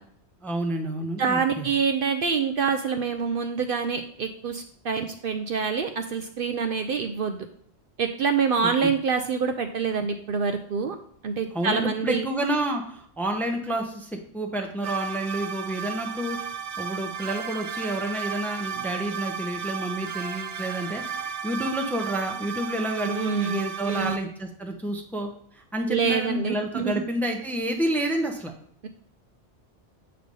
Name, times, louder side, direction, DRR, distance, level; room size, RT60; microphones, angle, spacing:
voice 1, 0.4-1.7 8.8-8.9 11.5-28.5, right 1 dB, ahead, 3 dB, 0.6 m, -29 dB
voice 2, 1.2-7.4 8.0-11.0 11.2-12.2 23.0-24.2 25.9-27.0, right 5 dB, 60° right, 6 dB, 0.6 m, -26 dB
sound 1, 14.8-24.2, right 7 dB, 85° right, 0.9 m, -34 dB
7.7 x 3.3 x 5.3 m, 0.65 s
omnidirectional pair, 1.2 m